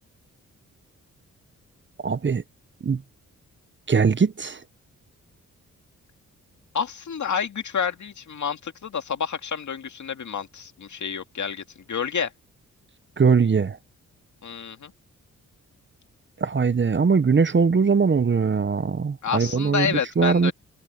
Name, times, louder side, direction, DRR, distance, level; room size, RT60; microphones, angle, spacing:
voice 1, 2.0-2.4 2.8-3.0 3.9-4.6 13.2-13.8 16.4-20.5, right 5 dB, 35° right, 1.0 m, -21 dB
voice 2, 6.7-12.3 14.4-14.9 19.2-20.5, left 7 dB, 60° left, 2.3 m, -29 dB
cardioid pair, 55°, 33 cm